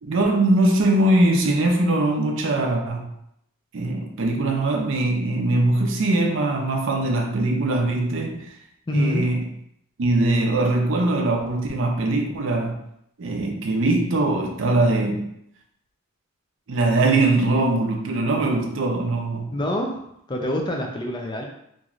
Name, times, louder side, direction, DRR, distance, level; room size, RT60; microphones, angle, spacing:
voice 1, 0.0-3.1 3.7-8.5 8.9-9.4 10.0-12.8 13.2-15.3 16.7-19.5, right 2 dB, 55° right, 2 dB, 0.4 m, -21 dB
voice 2, 8.9-9.4 19.5-21.4, left 1 dB, 20° left, 1 dB, 0.3 m, -26 dB
3.0 x 2.5 x 2.4 m, 0.74 s
head